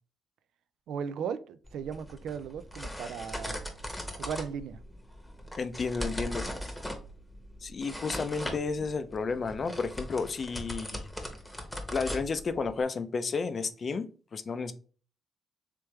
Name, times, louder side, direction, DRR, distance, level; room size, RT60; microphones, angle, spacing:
voice 1, 0.9-3.6 4.1-4.8, right 7 dB, 80° right, 13 dB, 0.3 m, -36 dB
sound 1, 1.7-12.8, equal, 5° left, 1.0 m, -40 dB
voice 2, 5.6-6.4 7.6-11.1 11.9-14.7, left 4 dB, 45° left, 11 dB, 0.4 m, -32 dB
3.4 x 3.3 x 3.1 m, 0.40 s
cardioid pair, 80°, 0 cm